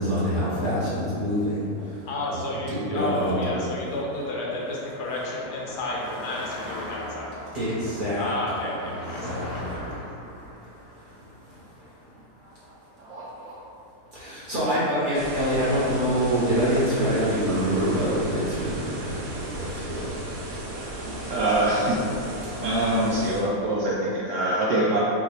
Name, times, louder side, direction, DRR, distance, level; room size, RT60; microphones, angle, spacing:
voice 1, 0.0-2.0 2.3-3.5 7.5-9.8 14.1-19.1 19.5-20.2, equal, 35° right, -11 dB, 1.4 m, -26 dB
Car passing by, 1.8-13.3, left 1 dB, 15° left, 1.0 m, -41 dB
voice 2, 2.1-7.3 8.2-9.9, left 2 dB, 80° left, -4 dB, 1.4 m, -31 dB
voice 3, 13.0-13.6 21.2-22.0 22.6-25.0, right 1 dB, 65° right, -6 dB, 0.8 m, -24 dB
sound 1, 15.1-23.4, right 1 dB, 90° right, 1.5 m, -35 dB
5.7 x 2.6 x 3.2 m, 2.6 s
omnidirectional pair, 1.7 m